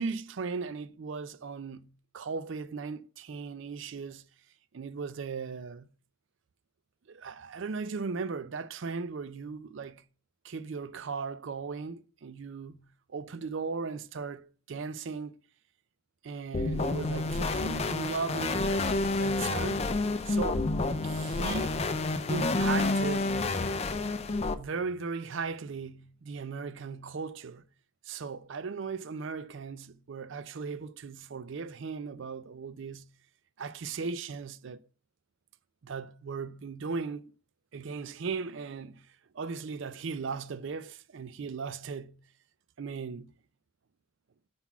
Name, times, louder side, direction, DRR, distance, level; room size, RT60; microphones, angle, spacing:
voice 1, 0.0-4.3 4.7-5.9 7.1-10.0 10.4-15.4 16.2-19.8 20.2-20.7 21.0-21.8 22.3-23.4 24.5-27.7 28.0-33.1 33.6-34.8 35.8-37.3 37.7-42.2 42.8-43.3, right 5 dB, 60° right, 0.4 m, -37 dB
sound 1, 16.5-24.5, left 2 dB, 30° left, 0.4 m, -29 dB
5.7 x 3.9 x 5.9 m
head